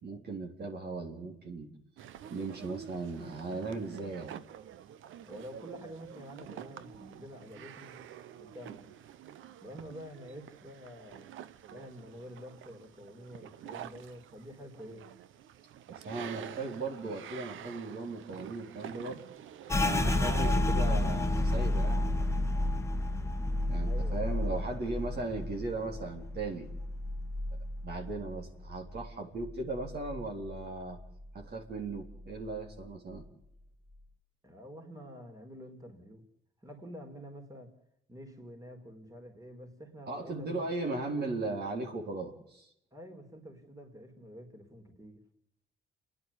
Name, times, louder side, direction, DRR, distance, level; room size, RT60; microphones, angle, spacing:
voice 1, 0.0-1.7 2.3-4.3 15.9-19.2 19.8-22.1 23.7-26.7 27.8-31.0 31.3-33.2 40.1-42.7, right 3 dB, 55° right, 1 dB, 4.0 m, -37 dB
sound 1, 2.0-20.5, right 10 dB, 80° right, 1.0 m, -47 dB
voice 2, 5.2-8.0 8.4-8.9 9.6-11.3 11.7-15.1 23.8-24.6 34.4-36.2 36.6-37.7 38.1-41.4 42.9-45.2, equal, 15° right, 4 dB, 4.2 m, -48 dB
sound 2, 19.7-29.1 29.4-30.6 31.0-31.4 31.9-32.5, left 1 dB, 15° left, 1.5 m, -31 dB
28.5 x 11.0 x 9.9 m, 0.76 s
cardioid pair, 90°, 20 cm